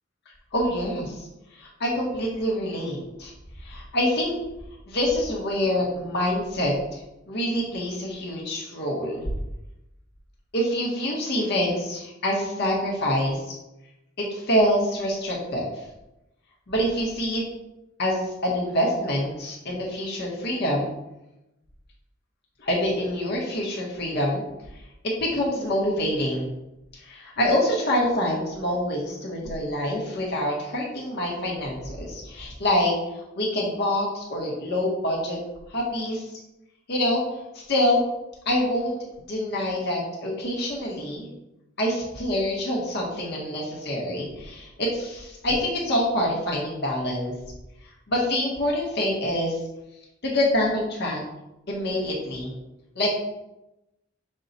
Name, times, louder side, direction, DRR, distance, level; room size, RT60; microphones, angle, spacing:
voice 1, 0.5-1.3 1.5-3.3 3.6-4.3 4.9-7.0 7.3-9.2 10.5-13.4 14.2-15.7 16.7-17.4 18.0-20.9 22.6-24.4 25.0-26.4 27.0-32.9 33.4-35.4 35.7-36.3 36.9-37.2 37.5-38.0 38.4-39.0 39.3-41.3 41.8-47.3 48.1-49.6 50.2-51.2 51.7-52.5 53.0-53.2, left 1 dB, 55° left, -3 dB, 1.0 m, -26 dB
5.4 x 2.3 x 4.0 m, 0.94 s
head